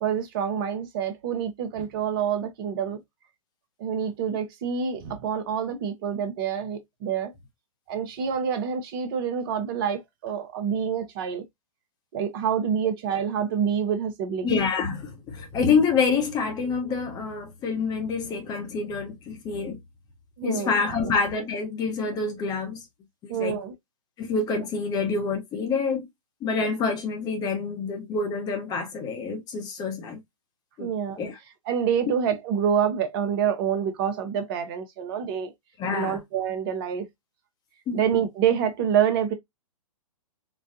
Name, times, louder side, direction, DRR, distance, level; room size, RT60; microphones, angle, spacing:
voice 1, 0.0-3.0 3.8-7.3 7.9-11.4 12.1-14.5 20.4-20.7 21.0-21.1 23.3-23.7 30.8-31.2 31.7-35.5 35.9-37.1 37.9-39.3, right 8 dB, 40° right, 0.9 m, -27 dB
voice 2, 14.4-19.8 20.4-22.9 23.2-23.6 24.2-26.1 26.4-30.2 30.8-30.9 31.2-31.4 32.0-32.1 35.8-36.2 37.9-38.0, left 5 dB, 20° left, 0.8 m, -27 dB
4.2 x 2.2 x 2.6 m
figure-of-eight pair, 120°, 18 cm